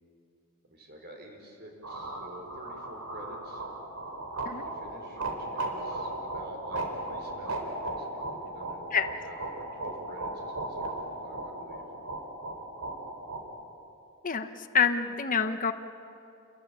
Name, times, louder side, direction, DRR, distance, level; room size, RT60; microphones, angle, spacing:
voice 1, 0.7-3.6 4.6-11.9, right 1 dB, 50° right, 2 dB, 5.4 m, -48 dB
sound 1, 1.8-13.4, right 2 dB, 75° right, 4.4 m, -36 dB
voice 2, 14.2-15.7, left 6 dB, 40° left, 8 dB, 1.1 m, -27 dB
29.5 x 22.0 x 8.9 m, 2.8 s
head